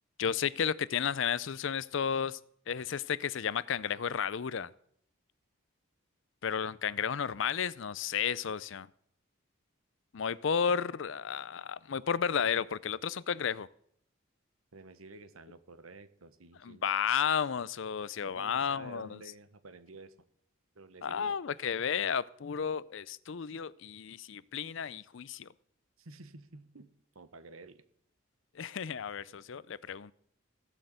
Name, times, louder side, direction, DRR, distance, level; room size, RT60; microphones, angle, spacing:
voice 1, 0.2-2.4 2.7-4.7 6.4-8.9 10.1-13.7 16.6-19.1 21.0-25.5 28.6-30.1, left 7 dB, 65° left, 0.5 m, -32 dB
voice 2, 14.7-16.9 18.3-20.1 20.7-21.4 26.0-27.8, right 3 dB, 85° right, 1.1 m, -51 dB
16.5 x 6.4 x 8.0 m
head